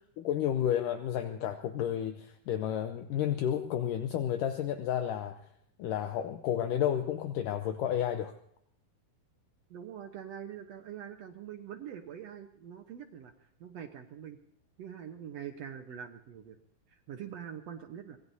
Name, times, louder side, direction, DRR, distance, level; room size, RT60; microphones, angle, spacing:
voice 1, 0.2-5.4 5.8-8.3, left 10 dB, 75° left, 6 dB, 2.2 m, -31 dB
voice 2, 9.7-13.3 13.6-14.4 14.8-16.6 16.9-18.2, right 9 dB, 70° right, 4 dB, 1.6 m, -44 dB
25.0 x 19.5 x 2.8 m, 0.69 s
omnidirectional pair, 4.3 m